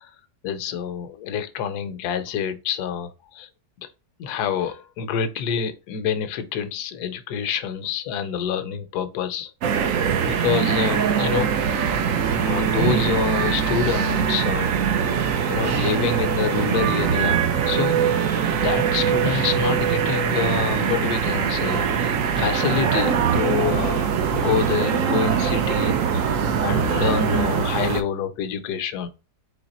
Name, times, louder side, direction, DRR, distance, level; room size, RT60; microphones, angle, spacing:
voice 1, 0.4-3.1 3.4-3.5 4.2-9.5 9.8-9.9 10.3-11.5 12.4-14.8 15.5-18.0 18.5-26.3 26.6-29.1, left 7 dB, 75° left, 1.2 m, -27 dB
sound 1, 9.6-28.0, right 7 dB, 65° right, 0.9 m, -22 dB
4.0 x 3.2 x 4.1 m
omnidirectional pair, 1.8 m